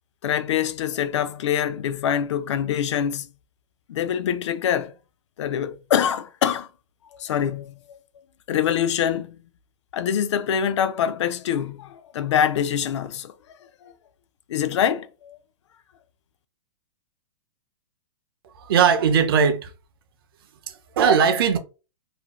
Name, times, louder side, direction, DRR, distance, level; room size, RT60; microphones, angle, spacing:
voice 1, 0.2-3.3 3.9-4.9 5.4-6.7 7.1-8.0 8.5-9.4 9.9-13.3 13.8-13.9 14.5-15.4, left 9 dB, 65° left, 0.4 m, -24 dB
voice 2, 18.6-19.7 20.7-21.6, right 7 dB, 45° right, 0.4 m, -19 dB
2.6 x 2.1 x 2.9 m
hypercardioid pair, 170°, 16 cm